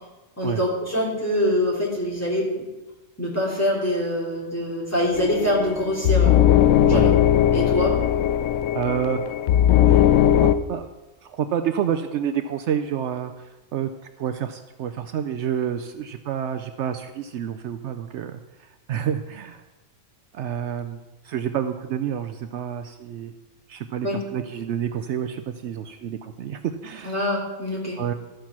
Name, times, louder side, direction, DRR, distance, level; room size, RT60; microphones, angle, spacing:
voice 1, 0.4-2.5 3.2-6.3 6.9-7.1 7.5-7.9 24.0-24.2 27.0-28.0, left 1 dB, 10° left, -4 dB, 2.8 m, -24 dB
sound 1, 5.1-10.6, left 11 dB, 80° left, 0.9 m, -18 dB
voice 2, 6.9-7.2 8.7-9.2 9.9-10.9 11.2-13.3 13.7-13.9 14.2-19.6 20.3-21.0 21.2-23.3 23.7-27.1 28.0-28.1, right 9 dB, 70° right, 8 dB, 0.8 m, -29 dB
13.0 x 6.7 x 5.9 m, 1.1 s
omnidirectional pair, 1.3 m